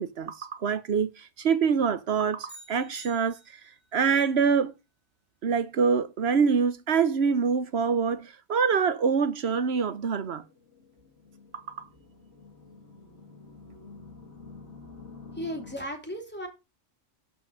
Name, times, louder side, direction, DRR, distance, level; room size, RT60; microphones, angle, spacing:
voice 1, 0.0-3.4 3.9-4.7 5.4-10.4 11.5-11.9, right 6 dB, 55° right, 1.1 m, -25 dB
sound 1, 2.5-3.9, right 2 dB, 30° left, 4.2 m, -48 dB
sound 2, 9.6-15.8, left 4 dB, 60° left, 2.3 m, -49 dB
voice 2, 15.3-16.5, equal, 10° left, 3.1 m, -35 dB
11.5 x 5.1 x 6.4 m
omnidirectional pair, 1.3 m